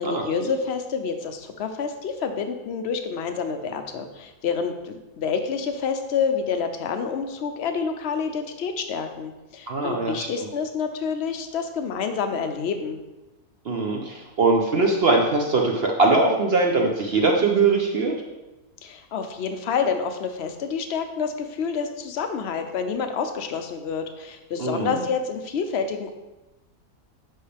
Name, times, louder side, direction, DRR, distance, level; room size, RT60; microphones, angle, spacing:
voice 1, 0.0-13.0 18.8-26.1, left 6 dB, 60° left, 7 dB, 0.7 m, -28 dB
voice 2, 9.7-10.3 13.7-18.1 24.6-25.0, right 3 dB, 55° right, 1 dB, 0.7 m, -21 dB
7.6 x 5.5 x 3.3 m, 1.1 s
omnidirectional pair, 1.6 m